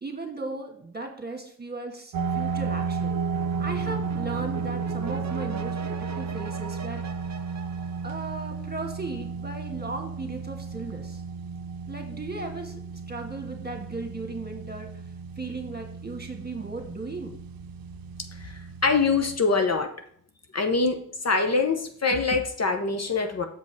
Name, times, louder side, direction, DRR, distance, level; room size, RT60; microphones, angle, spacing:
voice 1, 0.0-3.3 3.6-7.0 8.0-11.2 11.9-14.9 15.4-17.4, right 3 dB, 30° right, 4 dB, 1.7 m, -36 dB
sound 1, 2.1-19.4, right 5 dB, 85° right, 0.6 m, -33 dB
sound 2, 3.3-8.8, right 5 dB, 50° right, 0.8 m, -41 dB
voice 2, 18.4-19.9 20.5-21.0 21.2-23.5, left 4 dB, 45° left, 6 dB, 0.9 m, -24 dB
7.1 x 5.3 x 4.6 m, 0.62 s
cardioid pair, 55°, 34 cm